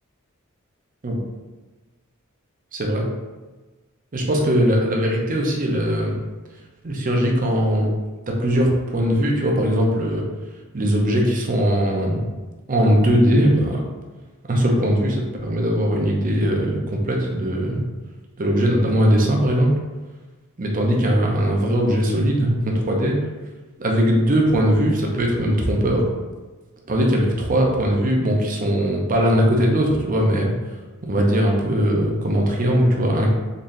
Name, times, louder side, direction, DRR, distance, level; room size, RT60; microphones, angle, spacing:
voice 1, 2.7-3.0 4.1-6.2 6.8-7.9 8.3-10.2 10.7-12.2 12.7-13.8 14.5-17.8 18.4-19.7 20.6-23.1 23.8-26.0 26.9-30.5 31.0-33.3, equal, 40° right, 0 dB, 0.7 m, -20 dB
3.9 x 3.3 x 2.6 m, 1.2 s
head